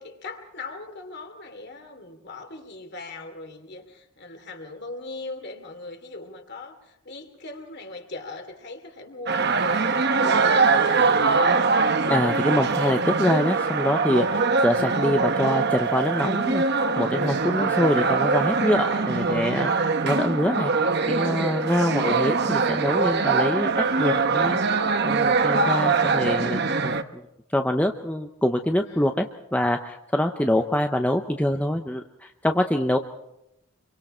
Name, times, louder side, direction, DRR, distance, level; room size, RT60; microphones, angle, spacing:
voice 1, 0.0-9.7 10.0-10.7 28.9-29.1, left 3 dB, 50° left, 5 dB, 2.8 m, -40 dB
sound 1, 9.3-27.0, right 4 dB, 50° right, 1.0 m, -22 dB
voice 2, 12.1-20.7 21.1-24.6 25.0-27.2 27.5-29.3 29.5-33.0, left 1 dB, 5° left, 5 dB, 0.7 m, -25 dB
26.5 x 23.5 x 4.4 m, 0.83 s
head